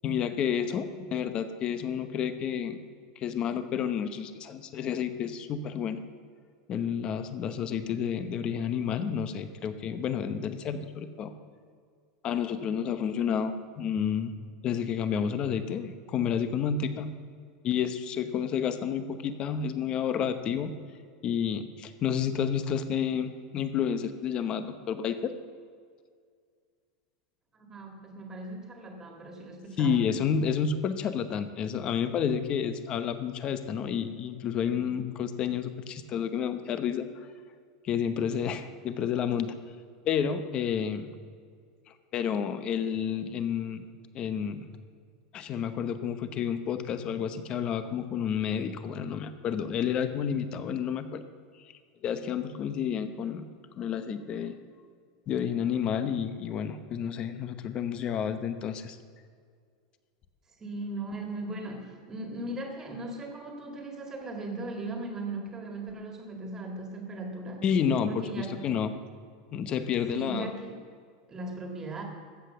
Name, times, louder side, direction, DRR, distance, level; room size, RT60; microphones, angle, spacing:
voice 1, 0.0-2.8 3.2-6.0 6.7-11.3 12.2-14.3 14.6-17.1 17.6-20.7 21.2-25.3 29.8-37.1 37.8-39.5 40.0-41.1 42.1-43.9 44.1-44.7 45.3-51.2 52.0-53.5 53.8-54.6 55.3-59.0 67.6-68.9 69.5-70.5, left 7 dB, 30° left, 10 dB, 0.8 m, -30 dB
voice 2, 27.5-30.0 60.6-67.6 68.1-68.6 70.1-70.8 71.3-72.0, right 2 dB, 15° right, 3 dB, 2.0 m, -38 dB
14.0 x 8.2 x 6.8 m, 2.1 s
supercardioid pair, 160°, 3 cm